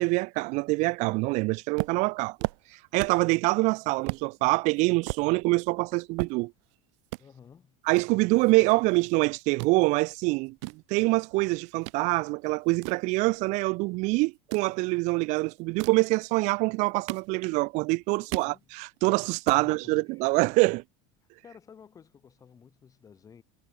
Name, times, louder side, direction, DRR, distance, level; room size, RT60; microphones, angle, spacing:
voice 1, 0.0-2.4 2.7-6.5 7.9-20.8, right 25 dB, 50° right, 0.5 m, -25 dB
sound 1, 1.8-3.3 3.7-3.8 4.1-4.3 4.7-6.7 7.0-7.2 7.9-9.1 9.4-9.8 10.3-12.0 12.4-13.7 14.3-14.7 15.6-16.1 16.7-17.7 18.0-18.6 19.0-19.1 19.3-19.7, right 27 dB, 75° right, 1.3 m, -37 dB
voice 2, 7.2-7.8 18.1-18.6 19.5-19.8 20.1-20.3 21.4-23.4, left 7 dB, 20° left, 6.1 m, -53 dB
supercardioid pair, 150°, 15 cm